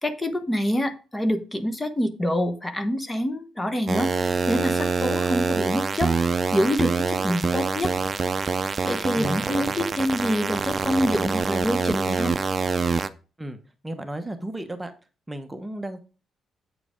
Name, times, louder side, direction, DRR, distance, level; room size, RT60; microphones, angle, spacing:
voice 1, 0.0-6.1 6.5-7.9 8.6-12.4, left 1 dB, 15° left, 9 dB, 1.1 m, -26 dB
sound 1, 3.9-13.1, right 4 dB, 35° right, 0.6 m, -25 dB
voice 2, 9.2-9.7 13.4-13.6 13.8-14.9 15.3-16.0, right 1 dB, 10° right, 7 dB, 1.0 m, -33 dB
8.3 x 4.9 x 5.0 m, 0.34 s
cardioid pair, 90°, 0 cm